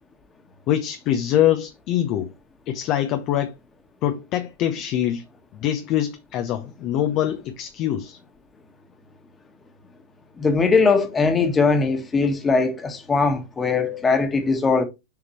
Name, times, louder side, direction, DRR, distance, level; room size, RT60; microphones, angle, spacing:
voice 1, 0.7-2.3 2.7-3.5 4.0-5.2 5.6-8.2, left 11 dB, 45° left, 0.9 m, -24 dB
voice 2, 10.4-14.8, left 4 dB, 15° left, 1.6 m, -20 dB
7.0 x 5.0 x 3.1 m
hypercardioid pair, 105°, 0 cm